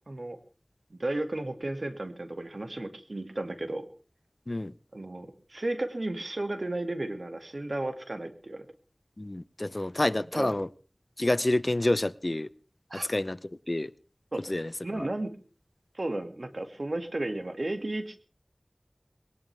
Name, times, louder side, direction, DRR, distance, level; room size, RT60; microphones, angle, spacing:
voice 1, 0.1-0.4 0.9-3.9 4.9-8.7 10.3-10.5 12.9-13.1 14.3-14.5 14.8-15.4 15.9-18.2, right 2 dB, 65° right, 7 dB, 2.3 m, -34 dB
voice 2, 9.2-10.7 11.2-12.5 12.9-13.4 13.7-13.9 14.5-15.1, left 1 dB, 45° left, 16 dB, 0.7 m, -28 dB
21.0 x 18.0 x 3.5 m, 0.37 s
wide cardioid pair, 50°, 0 cm